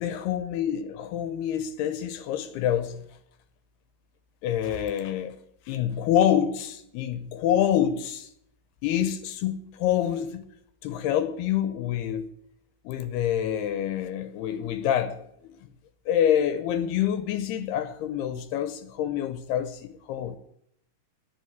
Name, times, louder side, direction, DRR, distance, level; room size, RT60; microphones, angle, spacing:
voice 1, 0.0-3.0 4.4-5.4 5.7-8.3 8.8-10.5 10.8-12.3 12.9-15.6 16.1-20.4, left 10 dB, 75° left, 2.6 m, -27 dB
11.0 x 9.8 x 9.4 m
omnidirectional pair, 5.2 m